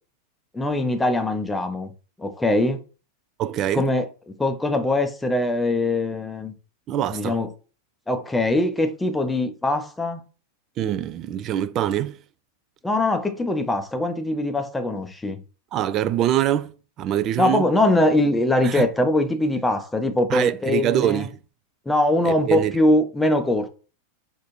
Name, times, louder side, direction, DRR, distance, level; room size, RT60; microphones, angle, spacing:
voice 1, 0.5-1.9 2.2-2.8 3.7-4.1 4.4-6.5 7.1-7.5 8.1-10.2 12.8-15.4 17.4-21.3 21.9-23.7, left 1 dB, 10° left, 0.6 m, -22 dB
voice 2, 3.4-3.9 6.9-7.4 10.8-12.2 15.7-17.7 18.6-18.9 20.3-21.4 22.2-22.7, right 11 dB, 35° right, 0.3 m, -24 dB
4.2 x 2.6 x 3.0 m
figure-of-eight pair, 90°, 0 cm